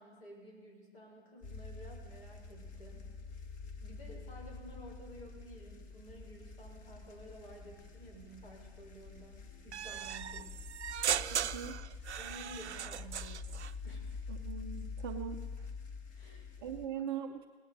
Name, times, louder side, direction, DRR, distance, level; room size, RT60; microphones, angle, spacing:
voice 1, 0.0-3.1 3.3-3.5 3.8-10.6 12.2-13.5 13.8-14.2 16.1-17.0, equal, 60° left, -1 dB, 5.6 m, -53 dB
sound 1, 1.4-16.9, left 4 dB, 25° left, 1.2 m, -47 dB
sound 2, 9.7-13.7, right 9 dB, 75° right, 0.5 m, -37 dB
voice 2, 11.3-11.8 14.3-15.4 16.6-17.5, right 8 dB, 25° right, 6 dB, 0.4 m, -40 dB
18.0 x 9.1 x 5.4 m, 1.4 s
figure-of-eight pair, 115°, 34 cm